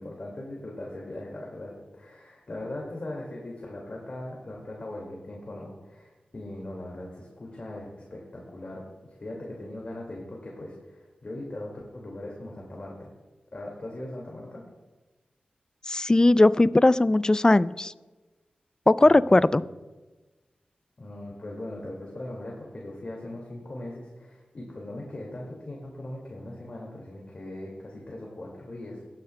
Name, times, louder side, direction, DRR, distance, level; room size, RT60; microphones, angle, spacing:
voice 1, 0.0-13.1 13.5-14.6 19.0-19.7 21.0-29.0, left 1 dB, 45° left, -2 dB, 2.1 m, -39 dB
voice 2, 15.9-17.9 18.9-19.6, left 2 dB, 25° left, 17 dB, 0.3 m, -19 dB
18.5 x 9.4 x 2.2 m, 1.2 s
cardioid pair, 55°, 3 cm